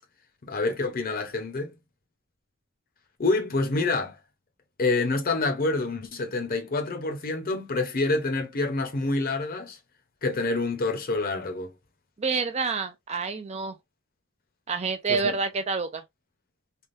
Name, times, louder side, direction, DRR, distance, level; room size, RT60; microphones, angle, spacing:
voice 1, 0.4-1.7 3.2-4.2 4.8-9.8 10.2-11.7 15.1-15.4, left 3 dB, 40° left, 0.8 m, -27 dB
voice 2, 12.2-13.8 14.7-16.0, right 4 dB, 30° right, 0.4 m, -28 dB
3.4 x 2.2 x 2.6 m
head